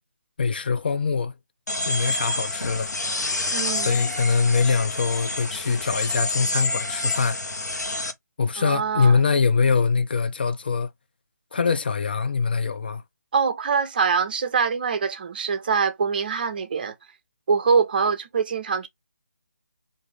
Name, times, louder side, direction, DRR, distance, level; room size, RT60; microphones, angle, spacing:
voice 1, 0.4-1.3 1.8-2.9 3.7-7.4 8.4-10.9 11.5-13.0, left 5 dB, 35° left, 0.3 m, -23 dB
sound 1, 1.7-8.1, left 2 dB, 80° left, 1.0 m, -28 dB
voice 2, 3.5-4.1 8.6-9.2 13.3-16.9 17.5-18.9, right 5 dB, 35° right, 0.6 m, -24 dB
3.6 x 2.6 x 3.2 m
figure-of-eight pair, 150°, 9 cm